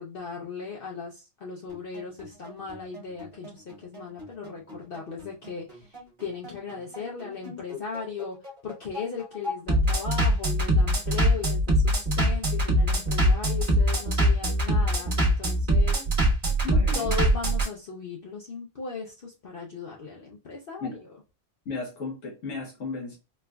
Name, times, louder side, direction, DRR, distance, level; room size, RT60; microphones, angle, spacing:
voice 1, 0.0-16.0 17.0-21.0, left 5 dB, 55° left, -2 dB, 0.7 m, -37 dB
Bass drum, 1.7-17.7, equal, 40° right, 1.4 m, -24 dB
voice 2, 16.6-17.1 20.8-20.9 21.6-23.2, left 4 dB, 90° left, -2 dB, 1.3 m, -34 dB
4.3 x 2.4 x 2.2 m, 0.29 s
omnidirectional pair, 1.3 m